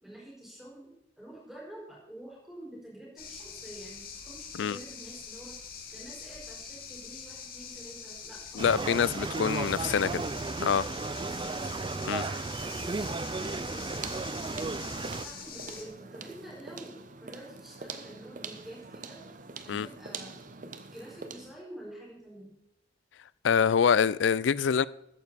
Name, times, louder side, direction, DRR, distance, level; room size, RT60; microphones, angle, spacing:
voice 1, 0.0-5.6 5.9-8.9 9.6-10.5 11.2-11.6 11.9-14.3 15.2-19.2 19.6-22.6, right 1 dB, ahead, 4.9 m, -48 dB
sound 1, 3.2-15.8, left 6 dB, 50° left, 1.7 m, -44 dB
voice 2, 8.6-10.2 10.6-10.9 12.1-12.2 19.7-19.9 23.4-24.9, left 7 dB, 65° left, 0.4 m, -25 dB
sound 2, 8.6-15.3, right 3 dB, 25° right, 0.3 m, -34 dB
sound 3, 13.4-21.6, right 5 dB, 40° right, 0.8 m, -45 dB
14.0 x 9.7 x 4.1 m
head